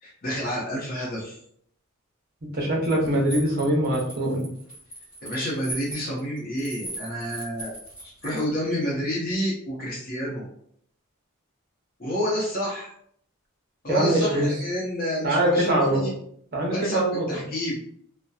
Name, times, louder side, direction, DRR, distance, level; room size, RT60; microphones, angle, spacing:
voice 1, 0.0-1.4 5.2-7.7 8.0-10.5 12.0-12.9 13.8-16.1 16.7-17.8, equal, 40° left, -4 dB, 0.7 m, -29 dB
voice 2, 2.5-4.5 13.9-14.5 15.2-16.0 16.5-17.4, right 1 dB, 45° right, -1 dB, 0.7 m, -23 dB
sound 1, 2.8-8.4, right 1 dB, 20° left, 1.2 m, -39 dB
2.7 x 2.1 x 2.3 m, 0.66 s
head